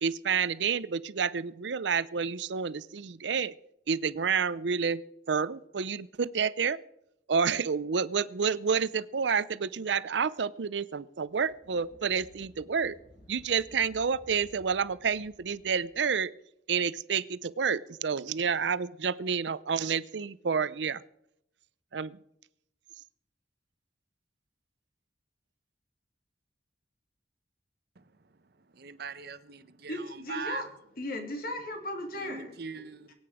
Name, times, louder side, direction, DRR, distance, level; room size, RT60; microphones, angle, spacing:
voice 1, 0.0-3.5 3.9-5.0 5.3-6.8 7.3-12.9 13.3-16.3 16.7-21.0 21.9-22.2, right 6 dB, 85° right, 0.6 m, -29 dB
sound 1, 11.3-16.0, left 1 dB, 85° left, 5.4 m, -57 dB
voice 2, 28.7-30.6 32.2-33.1, right 4 dB, 65° right, 0.9 m, -41 dB
voice 3, 29.9-30.7 31.0-32.6, left 1 dB, 55° left, 2.9 m, -36 dB
23.5 x 8.8 x 5.0 m
head